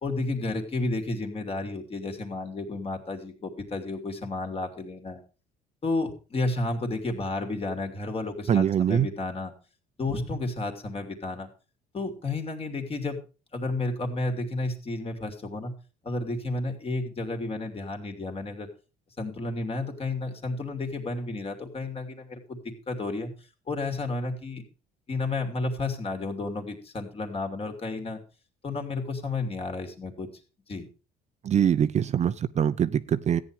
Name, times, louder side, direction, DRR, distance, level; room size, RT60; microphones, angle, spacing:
voice 1, 0.0-5.2 5.8-9.5 10.0-11.5 11.9-13.2 13.5-15.7 16.0-18.7 19.2-22.6 22.9-23.3 23.7-24.6 25.1-28.2 28.6-30.3 30.7-30.9, left 2 dB, 35° left, 3.0 m, -31 dB
voice 2, 8.5-9.1 31.4-33.4, right 9 dB, 40° right, 0.7 m, -23 dB
14.0 x 9.2 x 4.9 m
cardioid pair, 110°, 17 cm